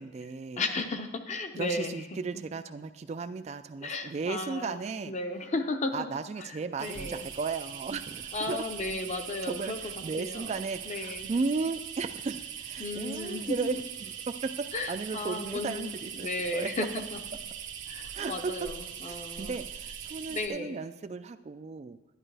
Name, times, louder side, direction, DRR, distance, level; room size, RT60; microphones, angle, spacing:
voice 1, 0.0-0.6 1.5-5.1 5.9-8.6 9.4-16.7 18.1-18.7 19.1-22.0, right 4 dB, 35° right, 10 dB, 0.3 m, -35 dB
voice 2, 0.6-2.0 3.8-4.8 5.1-6.1 6.4-6.5 6.8-7.2 8.3-9.8 10.2-10.5 10.9-11.3 12.8-13.6 14.7-15.9 16.2-17.2 17.9-19.5 20.3-20.7, left 2 dB, 40° left, 6 dB, 0.7 m, -34 dB
sound 1, 6.8-20.5, right 8 dB, 90° right, 1.0 m, -41 dB
11.0 x 11.0 x 3.4 m, 1.0 s
head